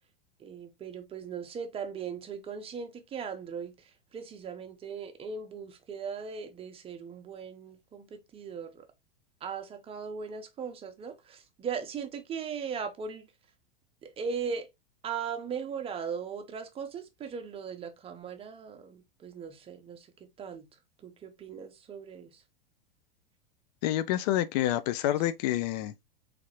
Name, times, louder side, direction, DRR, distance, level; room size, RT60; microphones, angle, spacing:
voice 1, 0.4-8.9 9.4-13.3 14.0-14.7 15.0-20.7 21.0-22.4, right 6 dB, 20° right, 0.8 m, -38 dB
voice 2, 23.8-25.9, left 13 dB, 45° left, 0.5 m, -28 dB
3.7 x 3.3 x 3.0 m
figure-of-eight pair, 95°, 29 cm